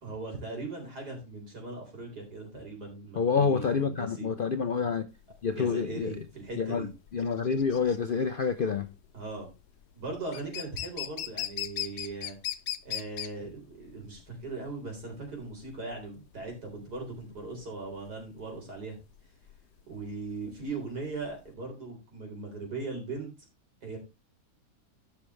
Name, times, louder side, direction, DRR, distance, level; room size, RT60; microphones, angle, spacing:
voice 1, 0.0-4.3 5.5-6.9 9.1-9.5 9.9-12.4 12.8-19.0 19.9-23.3 23.8-24.0, right 3 dB, 90° right, 4.4 m, -39 dB
voice 2, 3.2-5.1 5.4-6.1 6.6-6.9 7.1-8.9, left 5 dB, 60° left, 0.5 m, -27 dB
sound 1, 5.2-21.5, left 12 dB, 85° left, 1.3 m, -39 dB
14.5 x 5.9 x 3.2 m
omnidirectional pair, 1.7 m